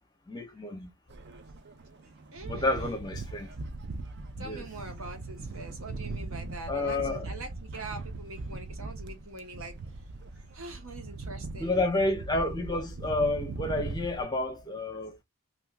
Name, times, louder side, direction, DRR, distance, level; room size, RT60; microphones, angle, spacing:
voice 1, 0.3-0.9 2.4-3.5 4.4-4.6 6.7-7.3 11.5-15.2, left 2 dB, 20° left, 0.7 m, -30 dB
sound 1, 1.1-14.2, right 3 dB, 50° right, 0.4 m, -40 dB
voice 2, 2.3-2.9 4.4-9.8 10.3-11.8, right 2 dB, 70° right, 1.1 m, -43 dB
2.7 x 2.4 x 3.2 m
head